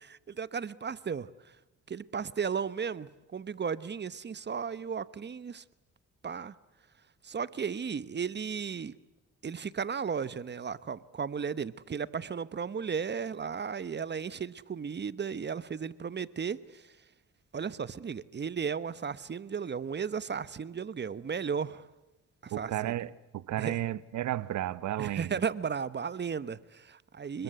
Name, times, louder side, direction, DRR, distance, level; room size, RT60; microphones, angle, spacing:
voice 1, 0.0-1.3 1.9-5.6 6.2-6.5 7.2-8.9 9.4-16.8 17.5-21.9 22.4-22.9 23.6-23.8 25.0-27.4, right 6 dB, 35° right, 1.1 m, -35 dB
voice 2, 22.5-25.4 27.3-27.4, right 13 dB, 70° right, 1.1 m, -33 dB
28.5 x 21.5 x 8.1 m
cardioid pair, 90°, 30 cm